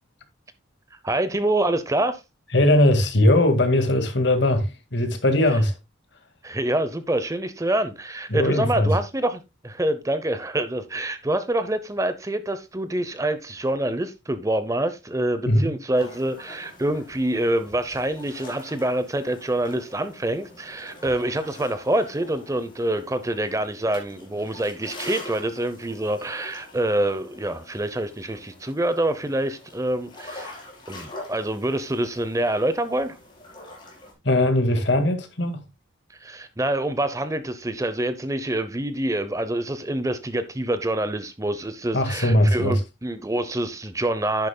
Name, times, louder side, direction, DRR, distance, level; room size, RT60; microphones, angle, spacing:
voice 1, 1.0-2.2 6.4-30.6 30.9-33.2 36.2-44.5, right 1 dB, 15° right, 0.7 m, -26 dB
voice 2, 2.5-5.7 8.3-9.0 15.5-15.7 34.2-35.6 41.9-42.8, left 1 dB, 55° left, 1.9 m, -20 dB
sound 1, 15.9-34.1, left 2 dB, 25° left, 4.4 m, -44 dB
10.5 x 10.5 x 2.2 m
head